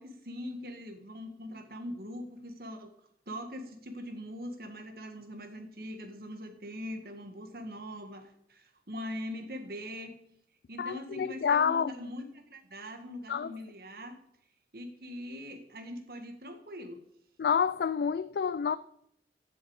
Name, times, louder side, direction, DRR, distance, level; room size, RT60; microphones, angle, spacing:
voice 1, 0.0-2.9 3.3-10.2 10.7-14.2 14.7-17.0, left 1 dB, 55° right, 1.7 m, -42 dB
voice 2, 10.8-11.9 13.3-13.5 17.4-18.8, left 6 dB, 65° left, 0.3 m, -28 dB
15.0 x 7.1 x 4.8 m
head